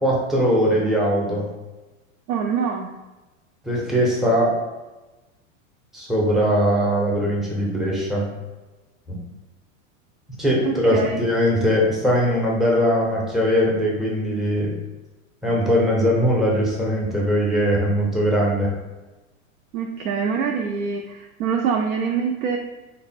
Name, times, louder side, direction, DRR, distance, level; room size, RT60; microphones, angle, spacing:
voice 1, 0.0-1.5 3.6-4.5 5.9-8.3 9.1-9.2 10.3-14.8 15.4-18.7, equal, ahead, -4 dB, 0.5 m, -20 dB
voice 2, 2.3-2.9 10.6-11.3 19.7-22.6, right 6 dB, 90° right, 2 dB, 0.5 m, -25 dB
3.2 x 2.1 x 4.2 m, 1.1 s
hypercardioid pair, 130°, 41 cm